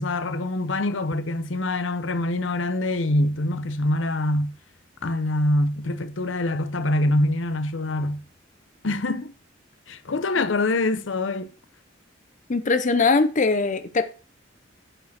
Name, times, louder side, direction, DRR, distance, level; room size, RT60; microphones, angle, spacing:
voice 1, 0.0-4.5 5.0-8.2 8.8-9.3 9.9-11.5, left 1 dB, 75° left, 0.8 m, -24 dB
voice 2, 12.5-14.0, left 4 dB, 40° left, 0.6 m, -21 dB
8.9 x 5.1 x 5.9 m
head